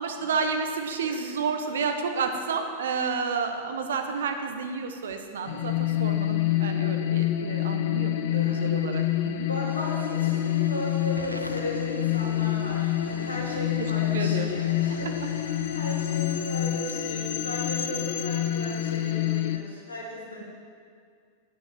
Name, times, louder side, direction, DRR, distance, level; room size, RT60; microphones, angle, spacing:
voice 1, 0.0-9.5 14.1-14.5 14.9-15.0, right 5 dB, 65° right, 5 dB, 0.8 m, -30 dB
voice 2, 1.0-1.3 8.3-8.8 9.5-20.4, left 1 dB, 75° left, -3 dB, 2.0 m, -36 dB
sound 1, 5.4-19.6, left 12 dB, 55° left, 0.4 m, -27 dB
Hiss / Fire / Tick, 8.0-18.4, right 1 dB, 90° right, 0.4 m, -45 dB
9.1 x 4.6 x 6.9 m, 2.2 s
figure-of-eight pair, 90°, 0 cm